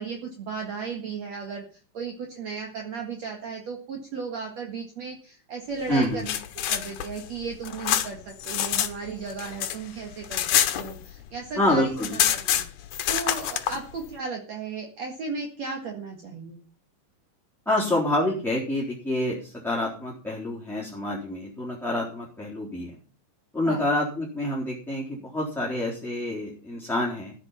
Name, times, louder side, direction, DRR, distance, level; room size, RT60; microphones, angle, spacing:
voice 1, 0.0-1.6 1.9-6.4 6.7-12.6 13.1-16.6 23.7-23.9, right 5 dB, 55° right, 2 dB, 2.8 m, -35 dB
voice 2, 5.9-6.3 11.6-12.2 17.6-22.9 23.5-27.3, left 1 dB, ahead, -7 dB, 3.3 m, -27 dB
sound 1, 6.0-8.9 9.2-11.4 11.6-11.7 12.0-13.8, left 11 dB, 70° left, 2.3 m, -26 dB
15.0 x 9.8 x 5.7 m, 0.39 s
omnidirectional pair, 4.0 m